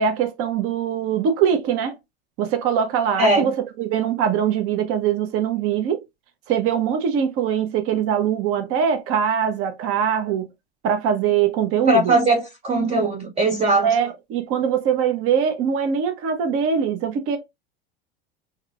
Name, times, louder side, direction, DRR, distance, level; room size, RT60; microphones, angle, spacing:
voice 1, 0.0-1.9 2.4-3.5 3.8-6.0 6.5-10.5 10.8-12.1 13.8-17.4, right 8 dB, 45° right, 0.9 m, -22 dB
voice 2, 3.2-3.5 11.9-14.0, right 2 dB, 20° right, 0.6 m, -19 dB
4.5 x 2.3 x 2.3 m
hypercardioid pair, 95°, 30 cm